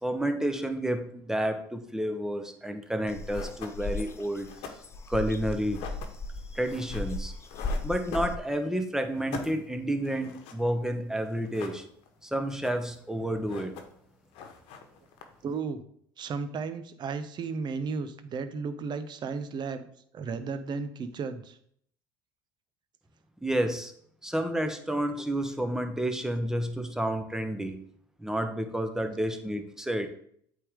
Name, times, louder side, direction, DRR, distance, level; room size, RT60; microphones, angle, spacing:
voice 1, 0.0-4.5 5.1-5.9 6.5-7.3 7.8-11.8 12.2-13.7 23.4-23.9 24.2-27.8 28.2-30.1, right 1 dB, 5° right, 7 dB, 0.9 m, -30 dB
sound 1, 2.9-3.0 3.3-8.8 9.1-10.9 11.3-12.2 12.5-13.1 13.3-14.1 14.3-15.6, left 5 dB, 65° left, 1.1 m, -44 dB
sound 2, 3.1-8.4, left 2 dB, 25° left, 0.6 m, -36 dB
voice 2, 15.4-15.8 16.2-19.9 20.1-21.6, right 5 dB, 45° right, 11 dB, 0.8 m, -34 dB
8.3 x 3.6 x 3.6 m, 0.66 s
hypercardioid pair, 70°, 11 cm